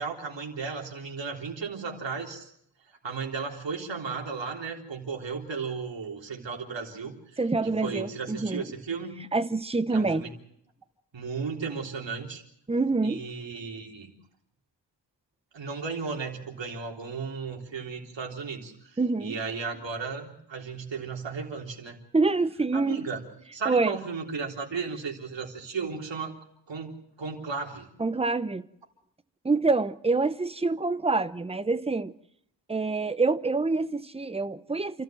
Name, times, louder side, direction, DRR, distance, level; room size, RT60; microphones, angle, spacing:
voice 1, 0.0-2.5 3.0-7.4 7.8-9.1 9.9-10.3 11.1-12.4 13.0-14.1 15.5-22.0 22.7-23.2 23.5-26.3 26.7-27.9, right 5 dB, 75° right, 3.7 m, -35 dB
voice 2, 7.4-8.7 9.3-10.2 12.7-13.2 19.0-19.4 22.1-23.0 23.6-24.0 28.0-28.6 29.4-32.1 32.7-35.0, right 3 dB, 15° right, 0.8 m, -26 dB
29.0 x 13.5 x 7.7 m
wide cardioid pair, 140°, 44 cm